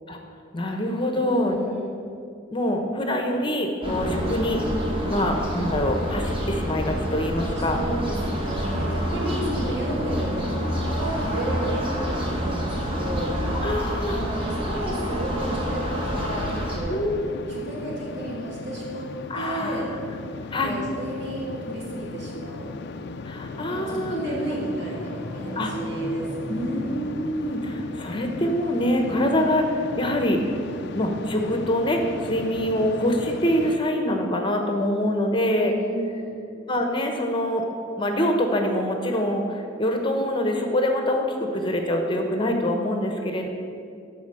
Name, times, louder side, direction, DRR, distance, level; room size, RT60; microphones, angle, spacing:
voice 1, 0.5-1.7 2.5-4.6 5.1-7.8 9.0-9.6 13.5-14.2 16.9-17.2 19.3-19.8 20.5-20.8 23.3-24.5 25.6-25.7 26.5-30.4 30.9-35.7 36.7-37.6 38.0-43.5, left 1 dB, 25° left, 3 dB, 1.0 m, -25 dB
voice 2, 1.1-2.0 7.7-13.3 14.1-17.0 17.5-19.1 19.3-19.9 20.6-22.8 23.7-26.9 35.5-36.4, right 1 dB, 65° right, -5 dB, 2.9 m, -32 dB
sound 1, 3.8-16.8, equal, 30° right, 1.7 m, -27 dB
sound 2, 15.8-33.8, left 3 dB, 60° left, 0.5 m, -37 dB
sound 3, 24.6-28.0, equal, 5° left, 1.5 m, -41 dB
13.0 x 4.4 x 7.7 m, 2.5 s
head